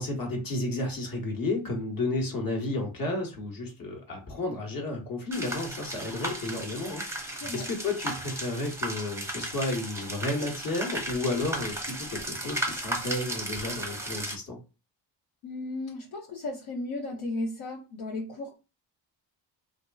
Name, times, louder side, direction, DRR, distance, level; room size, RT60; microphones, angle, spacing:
voice 1, 0.0-14.6, left 2 dB, 40° left, 2 dB, 1.2 m, -32 dB
sound 1, 5.3-14.4, right 1 dB, 5° right, 0.6 m, -35 dB
voice 2, 15.4-18.6, left 2 dB, 70° left, -1 dB, 0.9 m, -35 dB
2.6 x 2.5 x 2.3 m, 0.30 s
supercardioid pair, 60°, 50 cm